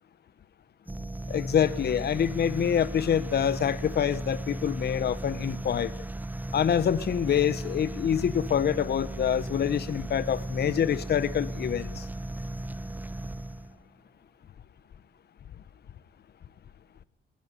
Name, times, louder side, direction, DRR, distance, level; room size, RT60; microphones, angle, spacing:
sound 1, 0.9-13.8, right 1 dB, 10° right, 0.9 m, -36 dB
voice 1, 1.3-5.9 6.5-12.1, left 9 dB, 55° left, 16 dB, 1.3 m, -26 dB
22.5 x 19.0 x 9.9 m, 0.69 s
cardioid pair, 90°, 20 cm